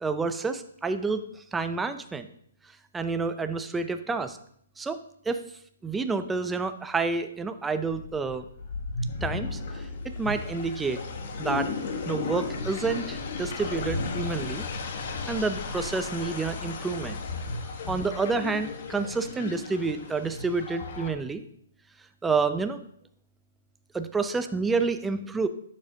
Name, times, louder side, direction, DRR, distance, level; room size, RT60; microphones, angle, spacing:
voice 1, 0.0-2.3 2.9-4.4 4.8-5.4 5.8-8.5 9.2-11.0 11.4-11.7 12.1-14.6 15.3-17.2 17.9-21.4 22.2-22.8 23.9-25.5, right 4 dB, 10° right, 9 dB, 0.5 m, -29 dB
sound 1, 7.9-21.1, left 4 dB, 50° left, 1.2 m, -34 dB
10.0 x 7.3 x 2.7 m, 0.66 s
hypercardioid pair, 145°, 0 cm